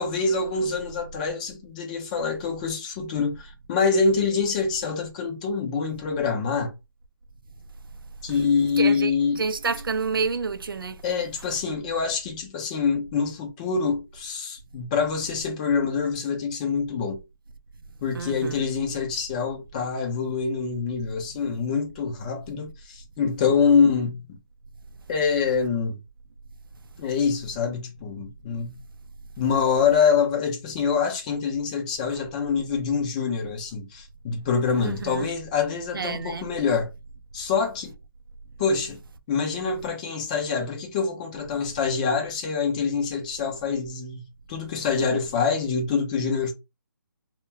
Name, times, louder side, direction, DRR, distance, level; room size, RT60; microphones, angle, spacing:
voice 1, 0.0-6.7 8.2-9.4 11.0-17.2 18.0-24.2 25.1-26.0 27.0-28.8 29.4-36.9 37.3-37.9 38.6-39.0 39.3-44.2 44.5-46.5, left 5 dB, 20° left, 0.5 m, -25 dB
voice 2, 8.8-11.0 18.1-18.6 34.8-35.3 35.9-36.5, right 4 dB, 80° right, 0.4 m, -29 dB
2.1 x 2.1 x 3.4 m
figure-of-eight pair, 150°, 12 cm